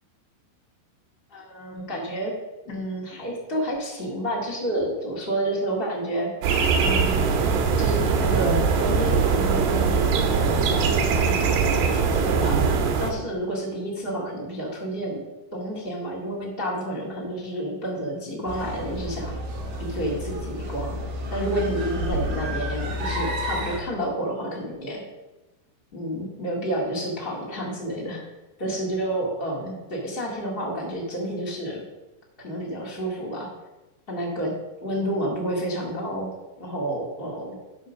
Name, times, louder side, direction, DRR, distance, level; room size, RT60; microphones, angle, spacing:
voice 1, 1.3-2.3 2.6-6.3 6.8-12.6 13.0-15.2 15.5-19.4 19.8-21.0 21.3-25.0 25.9-28.2 28.6-31.8 32.4-33.5 34.1-36.3 36.6-37.6, right 1 dB, 85° left, -4 dB, 0.5 m, -30 dB
sound 1, 6.4-13.1, right 5 dB, 80° right, 3.2 m, -21 dB
sound 2, 18.5-23.8, equal, 60° right, 3.3 m, -30 dB
10.5 x 5.5 x 6.2 m, 1.1 s
omnidirectional pair, 4.9 m